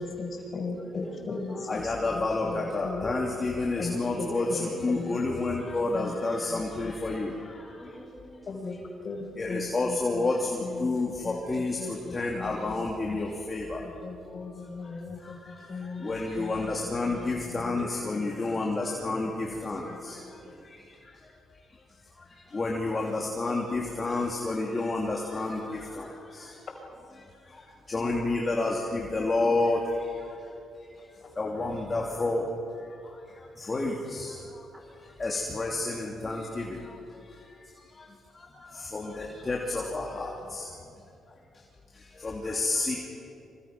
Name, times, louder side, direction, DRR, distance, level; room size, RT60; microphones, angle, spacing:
voice 1, 0.0-3.1 3.8-5.2 5.9-6.1 6.5-6.9 8.5-8.8 9.0-10.3 10.6-13.2 13.8-16.7 17.0-18.7 19.8-20.5 31.2-31.3, left 3 dB, 45° left, 2 dB, 5.3 m, -38 dB
voice 2, 1.0-1.6 4.3-5.4 7.8-8.5 17.8-17.9 19.7-19.8 34.5-35.1, equal, 10° right, 1 dB, 5.5 m, -46 dB
voice 3, 1.7-4.5 4.8-7.8 9.4-13.9 14.8-14.9 15.2-21.3 22.2-26.6 27.5-30.5 31.3-32.5 32.8-34.7 35.2-38.1 38.3-40.7 41.9-43.1, left 2 dB, 30° left, -1 dB, 3.0 m, -30 dB
26.5 x 25.5 x 6.1 m, 2.6 s
cardioid pair, 90°, 0 cm